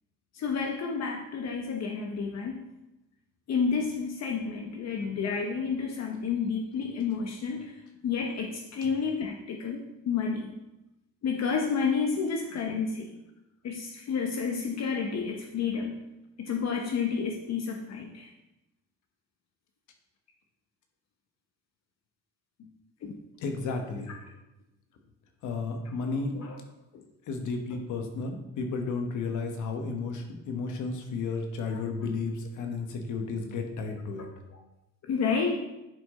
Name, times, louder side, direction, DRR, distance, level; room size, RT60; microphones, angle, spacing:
voice 1, 0.3-2.6 3.5-7.7 8.0-10.5 11.2-13.1 13.6-16.0 16.4-18.3 23.0-23.1 26.3-26.6 31.7-31.8 35.1-35.6, left 5 dB, 60° left, 2 dB, 0.9 m, -30 dB
voice 2, 23.4-24.1 25.4-26.3 27.3-34.3, left 4 dB, 80° left, 4 dB, 1.4 m, -33 dB
10.5 x 5.1 x 3.8 m, 0.94 s
cardioid pair, 90°, 30 cm